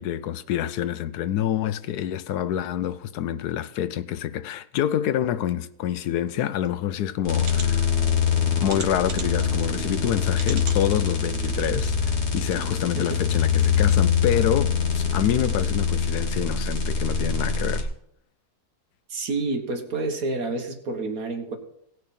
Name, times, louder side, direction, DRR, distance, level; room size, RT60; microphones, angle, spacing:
voice 1, 0.0-7.9 8.6-17.9, left 11 dB, 80° left, 1.1 m, -27 dB
sound 1, 6.6-6.7 7.4-7.7 8.7-9.4 10.3-10.8 11.4-11.5 11.8-11.9, right 6 dB, 85° right, 1.8 m, -37 dB
sound 2, 7.2-17.8, left 6 dB, 45° left, 1.7 m, -24 dB
voice 2, 19.1-21.6, right 3 dB, 65° right, 1.8 m, -29 dB
18.0 x 6.4 x 4.2 m
omnidirectional pair, 1.7 m